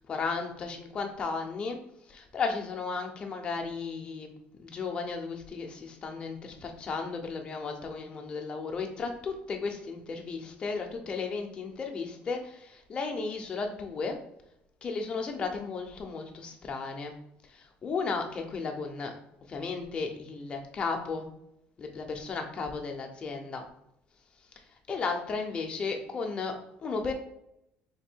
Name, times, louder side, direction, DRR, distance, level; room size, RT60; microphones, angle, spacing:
voice 1, 0.1-1.8 2.1-4.3 4.6-14.2 14.8-17.2 17.5-19.1 19.5-21.3 21.8-23.6 24.9-27.1, left 4 dB, 25° left, 3 dB, 0.5 m, -34 dB
3.4 x 2.5 x 4.4 m, 0.80 s
cardioid pair, 165°, 4 cm